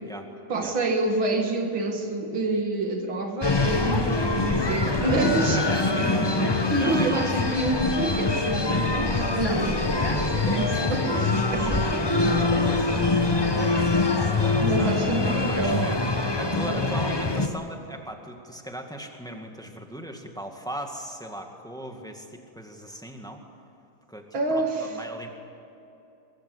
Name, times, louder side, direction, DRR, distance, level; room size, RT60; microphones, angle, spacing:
voice 1, 0.5-5.6 6.7-13.1 13.6-13.8 14.6-15.9 24.3-25.0, right 2 dB, 75° right, 3 dB, 2.7 m, -28 dB
sound 1, 3.4-17.5, left 3 dB, 20° left, 0.7 m, -24 dB
voice 2, 5.2-7.6 11.1-11.5 11.9-13.0 14.2-16.0 16.4-23.4 24.1-25.3, right 1 dB, ahead, 3 dB, 1.8 m, -38 dB
sound 2, 9.3-16.9, left 4 dB, 55° left, 2.5 m, -40 dB
23.0 x 21.5 x 8.2 m, 2.8 s
omnidirectional pair, 2.2 m